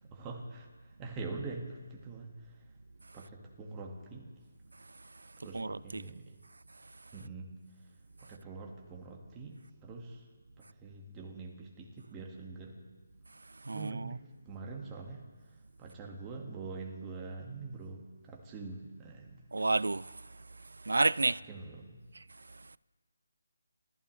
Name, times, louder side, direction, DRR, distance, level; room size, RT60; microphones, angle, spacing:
voice 1, 0.0-2.6 3.1-4.3 5.4-6.4 7.1-7.9 8.2-9.6 9.8-10.3 10.6-12.8 13.7-19.4 21.2-22.0, right 3 dB, 10° right, 1.7 m, -44 dB
voice 2, 5.5-6.0 13.6-14.1 19.5-20.2 20.8-21.4 22.5-22.8, right 3 dB, 85° right, 0.4 m, -31 dB
28.5 x 14.5 x 3.2 m
hypercardioid pair, 175°, 0 cm